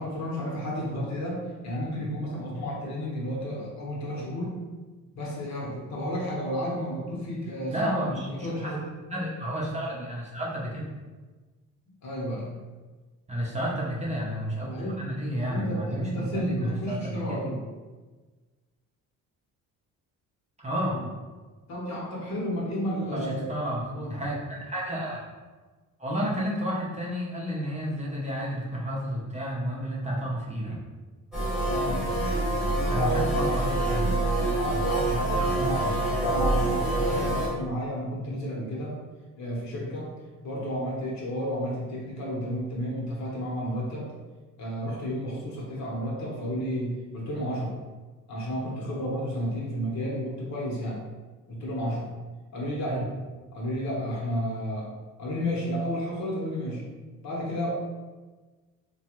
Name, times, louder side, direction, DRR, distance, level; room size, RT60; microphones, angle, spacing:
voice 1, 0.0-4.6 5.1-8.0 8.3-8.8 12.0-12.6 14.7-15.0 15.3-17.6 21.7-23.5 31.7-32.0 32.9-33.6 34.6-35.8 36.2-39.0 39.4-40.1 40.4-44.1 44.6-47.8 48.3-51.0 51.5-52.1 52.5-53.0 53.5-54.9 55.2-56.8 57.2-57.7, equal, 55° left, -4 dB, 1.0 m, -32 dB
voice 2, 7.7-8.3 8.6-8.8 9.1-10.9 13.3-14.7 15.0-17.4 20.6-21.0 23.1-25.2 26.0-30.8 32.9-34.2 35.1-35.8 52.9-53.1, equal, 20° right, -5 dB, 0.6 m, -31 dB
sound 1, 31.3-37.5, right 2 dB, ahead, 1.1 m, -26 dB
3.0 x 2.3 x 3.0 m, 1.3 s
cardioid pair, 100°, 33 cm